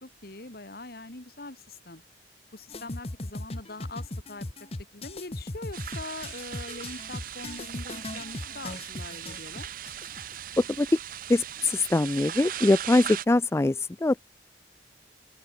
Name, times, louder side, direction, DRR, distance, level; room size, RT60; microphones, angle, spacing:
voice 1, 0.0-2.0 2.5-4.5 4.9-9.7, left 2 dB, 55° left, 2.2 m, -42 dB
sound 1, 2.7-10.3, left 2 dB, 35° left, 1.1 m, -38 dB
sound 2, 5.7-13.2, right 11 dB, 50° right, 0.6 m, -39 dB
voice 2, 10.6-10.9 11.3-14.2, left 2 dB, 15° left, 0.3 m, -23 dB
open air
head